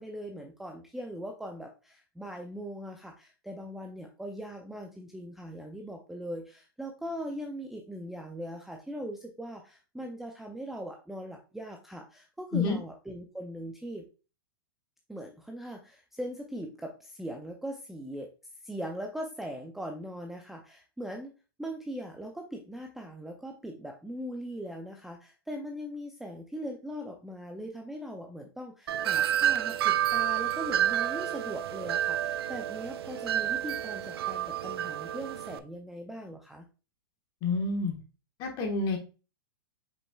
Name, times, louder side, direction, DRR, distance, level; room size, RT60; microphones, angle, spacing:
voice 1, 0.0-14.0 15.1-18.3 18.6-21.3 21.6-36.7, equal, ahead, 2 dB, 0.4 m, -40 dB
Wind chime, 28.9-35.6, right 11 dB, 80° right, 0.4 m, -29 dB
voice 2, 37.4-37.9 38.4-39.0, left 3 dB, 35° left, 3 dB, 1.3 m, -28 dB
5.3 x 4.3 x 2.3 m, 0.33 s
hypercardioid pair, 145°, 13 cm